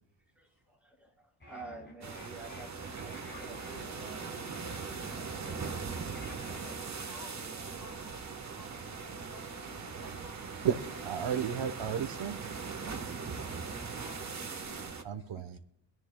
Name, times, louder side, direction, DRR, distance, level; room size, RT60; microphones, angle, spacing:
voice 1, 0.2-7.6, right 2 dB, 5° right, -3 dB, 4.7 m, -52 dB
sound 1, 1.4-6.9, left 1 dB, 20° left, 5.4 m, -51 dB
sound 2, 2.0-15.0, right 5 dB, 35° right, 1.2 m, -40 dB
voice 2, 7.0-8.2 8.5-10.6 10.9-11.4 14.0-14.9 15.2-15.6, left 3 dB, 40° left, -2 dB, 3.6 m, -55 dB
sound 3, 7.1-14.9, right 6 dB, 80° right, 2.0 m, -53 dB
voice 3, 11.0-12.5 15.0-15.6, right 8 dB, 65° right, 11 dB, 1.0 m, -33 dB
23.0 x 12.5 x 2.2 m, 0.79 s
wide cardioid pair, 135°, 47 cm